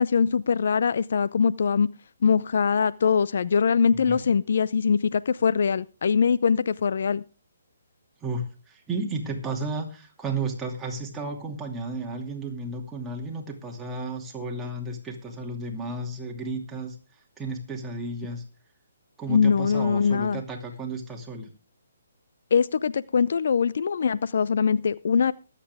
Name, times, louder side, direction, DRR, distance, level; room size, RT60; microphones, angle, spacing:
voice 1, 0.0-1.9 2.2-7.2 19.3-20.4 22.5-25.3, left 6 dB, 60° left, 0.5 m, -22 dB
voice 2, 8.2-16.9 17.4-18.4 19.2-21.5, right 3 dB, 10° right, 2.6 m, -33 dB
22.5 x 8.4 x 3.5 m
figure-of-eight pair, 135°, 0 cm